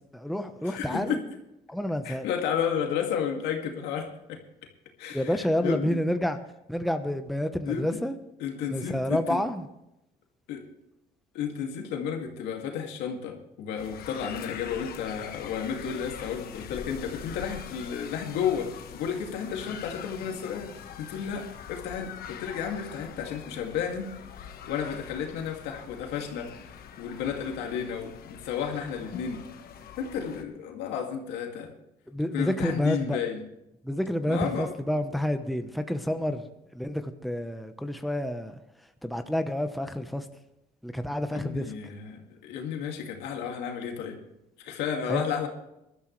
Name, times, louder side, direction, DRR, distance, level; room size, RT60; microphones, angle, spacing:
voice 1, 0.1-1.2 1.7-2.2 5.1-6.4 6.7-8.1 8.7-9.6 32.1-33.2 33.8-36.4 36.7-38.5 39.0-40.2 40.8-41.7 45.1-45.2, equal, ahead, 7 dB, 1.0 m, -29 dB
voice 2, 0.6-1.2 2.0-4.4 5.0-6.0 7.6-8.0 8.4-9.4 10.5-10.6 11.3-18.7 18.9-20.7 21.0-24.1 24.4-29.4 30.0-31.7 32.3-33.5 34.3-34.7 41.3-44.2 44.6-45.5, left 7 dB, 90° left, 2 dB, 2.3 m, -32 dB
sound 1, 13.8-30.4, left 8 dB, 65° left, 1.4 m, -44 dB
20.5 x 12.5 x 3.3 m, 0.86 s
cardioid pair, 110°, 17 cm